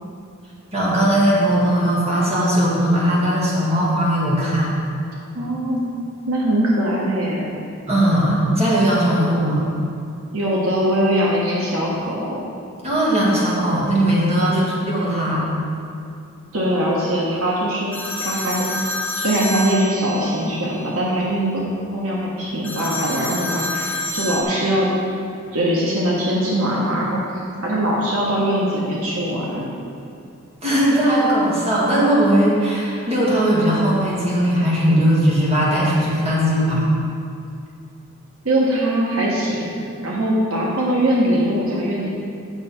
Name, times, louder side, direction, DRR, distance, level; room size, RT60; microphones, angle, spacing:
voice 1, 0.7-4.8 7.9-9.7 12.8-14.6 14.9-15.5 30.6-36.9, right 1 dB, 30° right, -7 dB, 2.1 m, -18 dB
voice 2, 5.3-5.8 6.3-7.5 10.3-12.4 14.4-14.7 16.5-17.9 18.2-18.6 19.2-21.7 21.9-24.9 25.5-29.7 38.4-39.8 40.0-42.1, right 1 dB, 70° right, -4 dB, 1.3 m, -21 dB
sound 1, 17.9-20.5 22.6-24.4, left 1 dB, 10° left, 1.3 m, -28 dB
8.7 x 6.6 x 4.4 m, 2.5 s
head